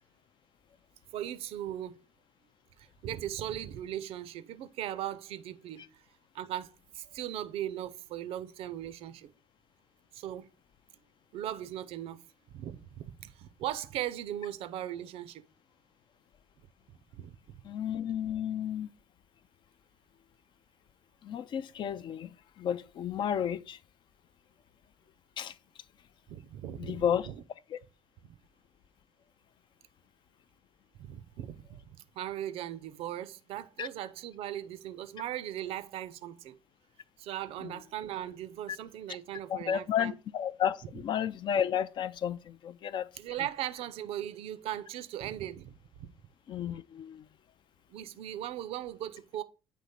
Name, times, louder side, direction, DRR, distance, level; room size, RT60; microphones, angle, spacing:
voice 1, 1.1-2.0 2.8-5.9 6.3-9.3 10.1-10.5 11.3-12.2 12.5-15.5 17.1-17.6 26.3-27.3 31.0-36.6 37.2-40.1 43.2-46.1 47.9-49.4, right 12 dB, 50° right, 0.5 m, -38 dB
voice 2, 17.6-18.9 21.2-23.8 25.4-25.6 26.8-27.3 27.7-27.8 33.8-33.9 37.6-37.7 39.5-43.1 46.5-47.3, left 9 dB, 40° left, 0.3 m, -32 dB
8.3 x 3.1 x 4.1 m
figure-of-eight pair, 50°, 12 cm